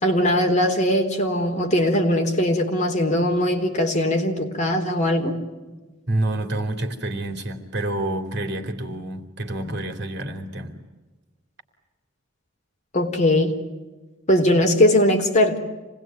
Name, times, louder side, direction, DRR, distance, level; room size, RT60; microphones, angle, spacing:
voice 1, 0.0-5.4 12.9-13.5 14.3-15.6, left 1 dB, 35° left, 3 dB, 3.7 m, -20 dB
voice 2, 6.1-10.8, right 1 dB, 60° right, 6 dB, 3.1 m, -28 dB
27.5 x 20.0 x 9.2 m, 1.2 s
head